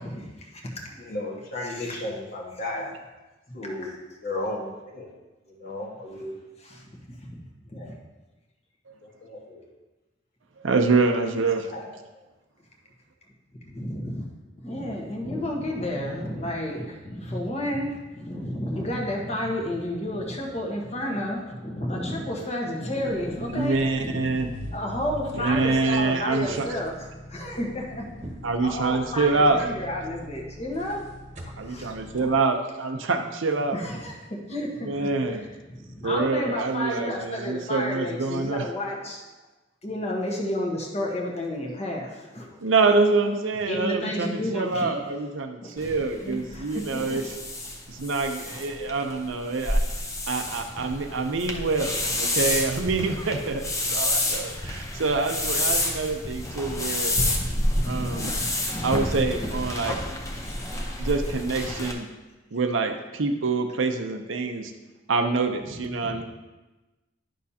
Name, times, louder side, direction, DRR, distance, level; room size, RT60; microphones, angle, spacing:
voice 1, 0.0-1.0 1.6-2.0 3.5-3.6 6.6-6.9 7.2-7.9 13.7-14.2 14.6-24.4 24.7-26.9 27.3-28.1 28.6-31.0 31.4-32.4 33.7-35.4 35.7-39.2 39.8-42.7 43.7-45.0 45.6-45.7 46.2-47.2 57.3-59.5 60.4-60.7 65.6-65.7 66.1-66.2, left 1 dB, 35° left, -1 dB, 1.2 m, -32 dB
voice 2, 1.0-2.9 3.5-3.9 4.2-5.1 5.5-6.3 7.7-7.9 9.0-9.6 11.7-11.9 58.0-58.3, left 2 dB, 50° left, -2 dB, 1.6 m, -34 dB
voice 3, 10.6-11.7 23.5-24.5 25.3-26.7 28.4-29.7 31.6-33.8 34.8-35.4 36.0-38.7 42.6-47.3 47.9-49.8 50.3-57.1 57.8-58.3 58.8-60.0 61.0-62.1 62.5-64.7 65.1-66.2, right 3 dB, 80° right, 4 dB, 0.6 m, -26 dB
sound 1, 23.0-32.4, equal, 35° right, 1.1 m, -41 dB
sound 2, 45.8-61.9, left 1 dB, 15° left, 0.7 m, -29 dB
10.0 x 6.3 x 2.8 m, 1.1 s
head